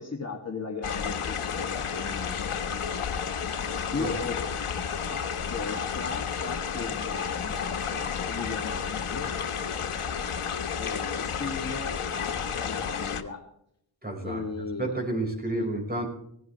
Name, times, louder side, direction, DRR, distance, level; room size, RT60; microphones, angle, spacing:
voice 1, 0.0-2.6 3.9-4.5 5.0-9.3 10.8-13.4 14.2-15.0 15.5-15.7, left 4 dB, 30° left, 0 dB, 2.5 m, -36 dB
sound 1, 0.8-13.2, left 7 dB, 80° left, 1.5 m, -31 dB
voice 2, 14.0-14.4 14.8-16.1, right 2 dB, 20° right, 2 dB, 5.5 m, -30 dB
17.5 x 16.0 x 3.4 m, 0.71 s
wide cardioid pair, 90°, 50 cm